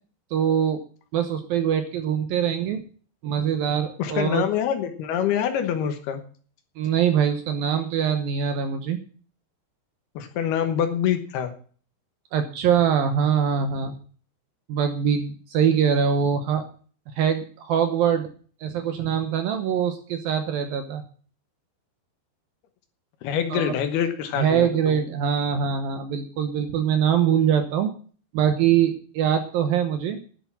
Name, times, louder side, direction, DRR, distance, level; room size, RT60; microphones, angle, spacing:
voice 1, 0.3-0.8 1.1-2.8 3.2-4.4 6.8-9.0 12.3-14.0 14.7-16.7 17.2-18.3 18.6-21.0 23.5-23.7 24.4-27.9 28.3-30.2, right 8 dB, 70° right, 8 dB, 2.4 m, -23 dB
voice 2, 4.0-6.2 10.1-11.5 23.2-25.0, left 9 dB, 70° left, 8 dB, 2.9 m, -25 dB
10.5 x 8.0 x 7.4 m, 0.43 s
omnidirectional pair, 5.1 m